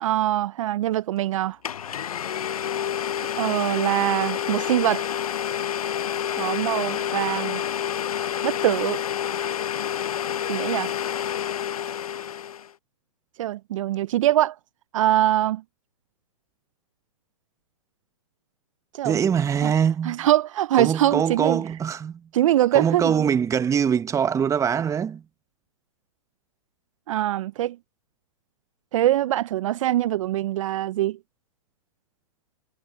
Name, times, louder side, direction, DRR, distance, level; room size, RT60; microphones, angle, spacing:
voice 1, 0.0-1.6 3.4-5.0 6.4-7.6 8.4-9.0 10.5-10.9 13.4-14.6 14.9-15.6 18.9-19.2 19.6-19.7 20.0-21.6 22.3-23.1 27.1-27.8 28.9-31.2, right 13 dB, 60° right, 0.7 m, -23 dB
Domestic sounds home sounds, 1.2-1.3 1.6-12.7, left 9 dB, 80° left, 1.0 m, -28 dB
voice 2, 19.0-20.3 20.8-22.3 22.7-25.2, right 7 dB, 15° right, 1.4 m, -23 dB
hypercardioid pair, 120°, 18 cm